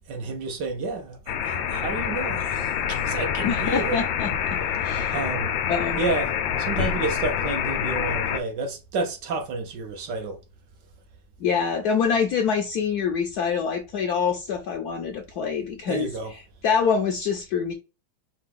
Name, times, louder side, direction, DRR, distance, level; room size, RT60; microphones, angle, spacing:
voice 1, 0.1-4.0 5.1-5.6 6.0-10.4 15.9-16.3, right 3 dB, 70° right, 1.5 m, -30 dB
sound 1, 1.3-8.4, left 8 dB, 85° left, 1.3 m, -26 dB
voice 2, 3.4-5.2 5.6-6.0 11.4-17.7, left 6 dB, 70° left, 1.0 m, -26 dB
4.9 x 2.3 x 3.6 m
omnidirectional pair, 2.0 m